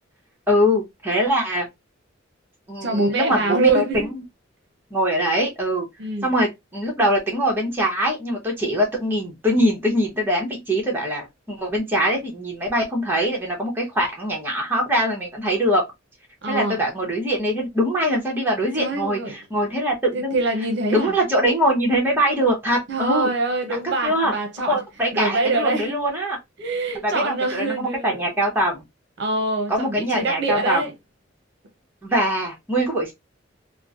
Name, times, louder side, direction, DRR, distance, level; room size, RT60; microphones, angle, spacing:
voice 1, 0.5-1.7 2.7-4.2 4.9-5.8 6.2-15.8 16.4-20.4 20.8-23.3 23.7-26.4 27.0-28.8 29.7-30.8 32.0-33.1, equal, 10° right, 0.9 m, -23 dB
voice 2, 2.8-4.1 6.0-6.3 16.4-16.8 18.8-19.4 20.1-21.1 22.9-24.8 25.1-26.0 26.6-28.2 29.2-30.9, right 2 dB, 60° right, 0.7 m, -24 dB
3.1 x 2.1 x 2.5 m
head